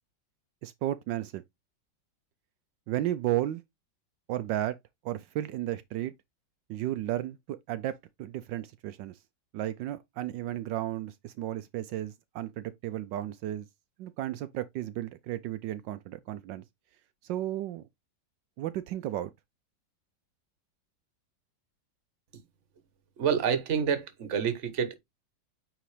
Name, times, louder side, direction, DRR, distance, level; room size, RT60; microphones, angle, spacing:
voice 1, 0.6-1.4 2.9-3.6 4.3-4.8 5.0-6.1 6.7-9.2 9.5-13.7 14.0-16.6 17.2-17.9 18.6-19.3, right 13 dB, 80° right, 1.2 m, -33 dB
voice 2, 23.2-24.9, right 7 dB, 45° right, 1.3 m, -28 dB
9.1 x 3.7 x 3.2 m
omnidirectional pair, 2.0 m